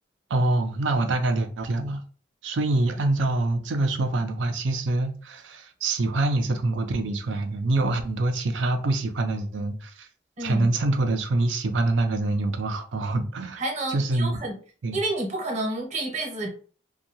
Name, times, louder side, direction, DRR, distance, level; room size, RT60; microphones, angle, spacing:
voice 1, 0.3-2.0 2.4-10.1 10.4-13.6 13.9-14.4 14.8-15.0, right 2 dB, 90° right, 0.5 m, -25 dB
voice 2, 10.4-10.7 13.6-14.5 14.9-16.5, right 2 dB, 40° right, 0.9 m, -29 dB
2.6 x 2.3 x 2.8 m
head